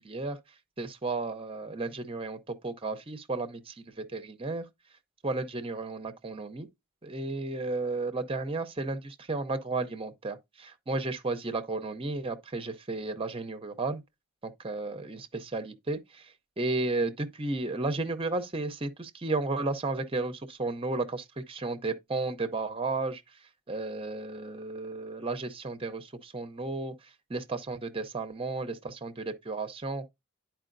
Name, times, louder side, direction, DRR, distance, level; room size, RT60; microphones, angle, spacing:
voice 1, 0.0-0.4 0.8-4.6 5.2-6.7 7.0-14.0 14.4-16.3 16.6-23.2 23.7-26.9 27.3-30.0, right 3 dB, 25° right, 0.6 m, -33 dB
10.0 x 4.6 x 2.5 m
head